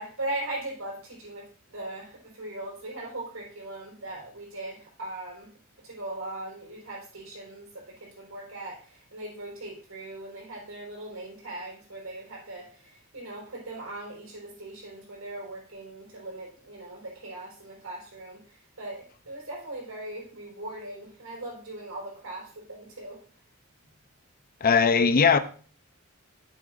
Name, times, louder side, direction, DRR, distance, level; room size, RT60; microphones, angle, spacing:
voice 1, 0.0-5.5 5.8-23.2, right 1 dB, 85° right, 4.5 m, -39 dB
voice 2, 24.6-25.4, left 5 dB, 45° left, 0.6 m, -19 dB
12.0 x 7.6 x 2.5 m
head